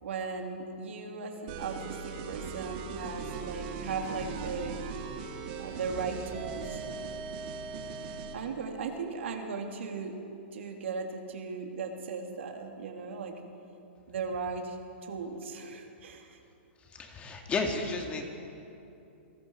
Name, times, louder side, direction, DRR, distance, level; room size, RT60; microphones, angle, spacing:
voice 1, 0.0-4.8 5.6-6.8 8.3-10.2 10.5-13.3 14.1-16.4, right 4 dB, 75° right, 3 dB, 2.9 m, -37 dB
sound 1, 1.5-8.4, right 5 dB, 45° right, 2.6 m, -39 dB
voice 2, 16.9-18.2, left 3 dB, 20° left, 3 dB, 2.2 m, -32 dB
29.0 x 19.5 x 4.7 m, 2.9 s
hypercardioid pair, 145°, 7 cm